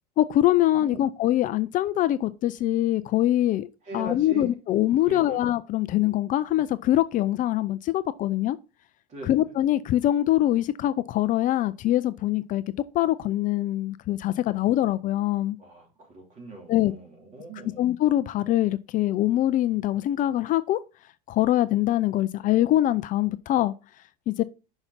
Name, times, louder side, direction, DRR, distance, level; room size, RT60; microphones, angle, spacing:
voice 1, 0.2-3.7 3.9-8.6 9.2-12.6 12.9-15.6 16.7-16.9 17.8-20.8 21.3-23.7 24.3-24.4, left 13 dB, 40° left, 0.5 m, -23 dB
voice 2, 3.8-4.5 5.0-5.4 9.1-9.4 15.6-17.8, right 2 dB, 35° right, 3.4 m, -40 dB
5.8 x 5.6 x 4.0 m
supercardioid pair, 100°, 20 cm